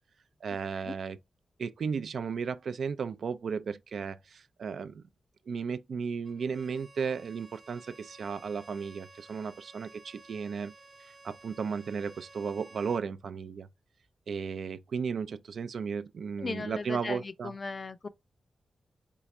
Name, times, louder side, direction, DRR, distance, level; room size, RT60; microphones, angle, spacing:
voice 1, 0.4-1.2 1.6-5.0 5.5-10.7 11.2-13.7 14.3-17.5, right 6 dB, 75° right, 0.4 m, -35 dB
Bowed string instrument, 6.2-13.1, right 3 dB, 40° right, 1.0 m, -54 dB
voice 2, 16.4-18.1, left 3 dB, 40° left, 0.5 m, -37 dB
4.6 x 2.4 x 4.0 m
wide cardioid pair, 110°, 0 cm